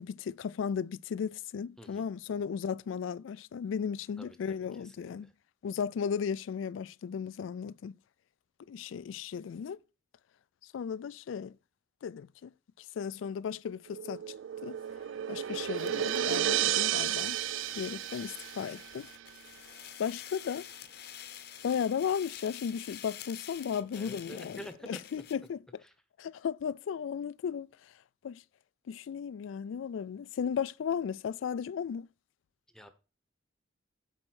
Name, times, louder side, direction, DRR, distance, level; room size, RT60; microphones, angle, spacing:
voice 1, 0.0-5.3 5.6-8.0 8.7-9.8 10.7-11.5 12.0-12.5 13.0-14.3 14.6-14.8 15.3-17.4 17.7-19.1 20.0-20.7 21.6-25.6 26.2-27.7 28.2-28.4 28.9-32.1, left 7 dB, 85° left, 0.3 m, -35 dB
voice 2, 4.2-5.3 23.7-25.0 25.8-25.9 32.7-32.9, equal, 5° left, 0.8 m, -48 dB
sound 1, 13.9-19.1, right 11 dB, 90° right, 0.4 m, -32 dB
sound 2, 15.6-25.5, left 10 dB, 55° left, 0.8 m, -49 dB
8.9 x 4.3 x 6.1 m
head